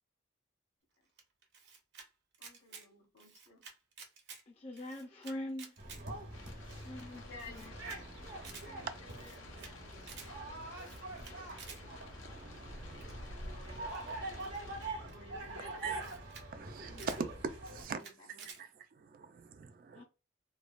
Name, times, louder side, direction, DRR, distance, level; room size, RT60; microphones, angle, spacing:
Camera, 1.2-2.1 2.3-2.9 3.2-4.4 4.7-6.0 6.4-6.5 6.7-6.8 7.0-7.1 7.4-8.0 8.3-8.7 9.1-9.7 10.0-10.3 10.7-11.8 13.0-13.3 13.9-15.2 15.7-15.8 16.0-16.5 16.7-17.2 17.6-18.6, right 5 dB, 65° right, 0.7 m, -52 dB
voice 1, 2.4-3.6 7.1-8.1 8.5-12.0 13.1-14.7 15.0-16.1 17.9-18.3, left 1 dB, 60° left, 1.2 m, -57 dB
voice 2, 4.5-5.8 6.8-7.2 7.5-7.7 16.9-17.1 19.9-20.0, left 1 dB, 30° left, 0.5 m, -43 dB
sound 1, 5.8-17.9, right 2 dB, 80° right, 1.1 m, -44 dB
sound 2, 6.3-14.9, left 4 dB, 85° left, 0.6 m, -55 dB
voice 3, 12.2-13.2 15.8-16.0 16.5-18.0 19.0-20.0, right 5 dB, 45° right, 0.3 m, -42 dB
3.1 x 2.2 x 2.4 m
head